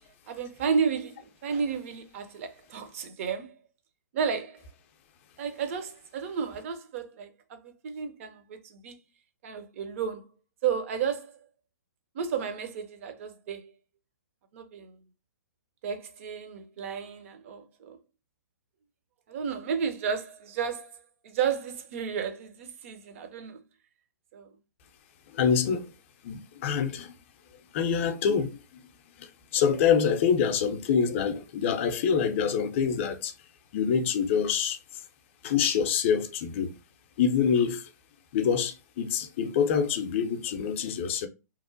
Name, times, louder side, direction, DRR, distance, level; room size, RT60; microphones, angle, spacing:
voice 1, 0.3-3.5 4.1-4.6 5.4-9.0 9.4-10.3 10.6-11.4 12.1-13.7 14.5-15.0 15.8-18.0 19.3-23.6 24.3-24.5, right 6 dB, 45° right, 0.5 m, -32 dB
voice 2, 25.3-25.9 26.2-27.1 27.7-28.6 29.2-33.3 33.7-35.0 35.4-36.8 37.2-37.9 38.3-41.3, left 7 dB, 40° left, 0.5 m, -26 dB
2.9 x 2.1 x 2.4 m
figure-of-eight pair, 125°, 10 cm